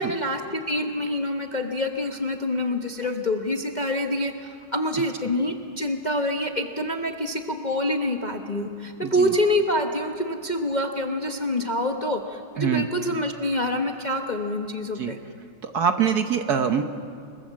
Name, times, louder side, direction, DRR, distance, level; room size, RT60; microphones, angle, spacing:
voice 1, 0.0-15.2, left 1 dB, 30° left, 3 dB, 0.9 m, -26 dB
voice 2, 9.0-9.3 12.6-12.9 14.9-15.1 15.6-16.8, right 7 dB, 55° right, 7 dB, 1.4 m, -24 dB
29.5 x 20.0 x 7.6 m, 2.3 s
omnidirectional pair, 2.2 m